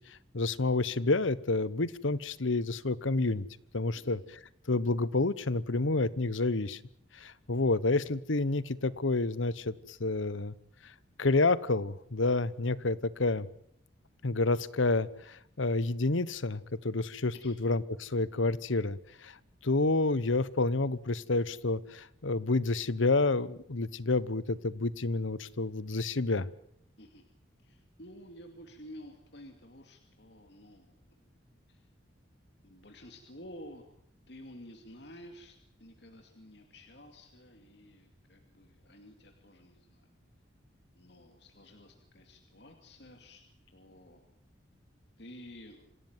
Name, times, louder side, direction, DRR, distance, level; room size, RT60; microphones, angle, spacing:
voice 1, 0.1-3.5 3.7-4.4 4.7-6.8 7.1-10.5 11.2-13.5 14.2-19.4 19.6-26.5, left 3 dB, 80° left, 19 dB, 1.1 m, -29 dB
voice 2, 27.6-31.4 31.7-31.9 32.6-33.8 34.3-40.1 40.9-43.4 43.7-44.2 45.2-45.9, equal, 60° left, 5 dB, 2.6 m, -52 dB
26.5 x 16.5 x 9.1 m, 0.72 s
head